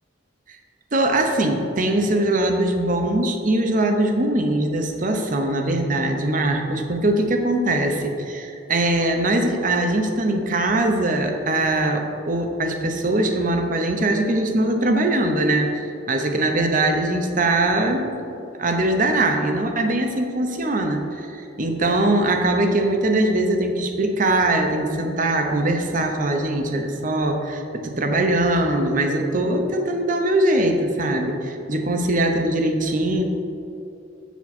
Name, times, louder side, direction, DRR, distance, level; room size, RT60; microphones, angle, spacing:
voice 1, 0.9-18.2 18.6-33.2, right 1 dB, 45° right, 4 dB, 0.8 m, -21 dB
7.2 x 7.1 x 4.3 m, 2.7 s
head